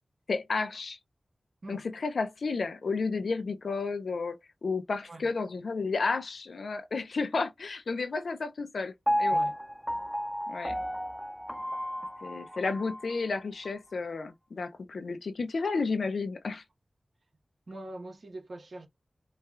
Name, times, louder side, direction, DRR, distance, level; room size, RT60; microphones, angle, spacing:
voice 1, 0.3-1.0 1.7-4.4 4.6-8.9 9.2-9.4 10.5-10.8 12.2-16.6, left 4 dB, 85° left, 0.5 m, -32 dB
Piano, 9.1-13.2 13.6-13.7, equal, 5° right, 0.3 m, -32 dB
voice 2, 17.7-18.9, right 2 dB, 65° right, 1.0 m, -43 dB
5.5 x 2.3 x 2.4 m
wide cardioid pair, 55°, 0 cm